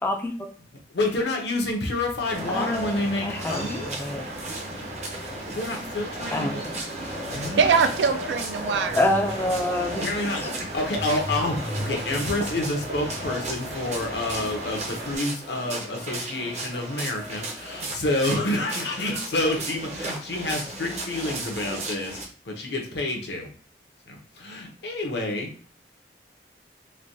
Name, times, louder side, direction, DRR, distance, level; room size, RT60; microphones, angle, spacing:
voice 1, 0.0-0.5 2.5-4.2 6.3-6.6 9.0-10.0, left 1 dB, 10° left, 4 dB, 0.3 m, -26 dB
voice 2, 0.9-4.1 5.5-6.6 7.3-7.6 10.0-23.5 24.1-25.5, left 2 dB, 75° left, 1 dB, 0.8 m, -28 dB
sound 1, 2.2-15.2, right 1 dB, 60° right, 1.1 m, -37 dB
sound 2, 2.3-22.2, right 1 dB, 40° right, 0.6 m, -35 dB
voice 3, 7.6-9.1, right 5 dB, 85° right, 8 dB, 0.4 m, -22 dB
3.2 x 2.2 x 2.7 m, 0.41 s
head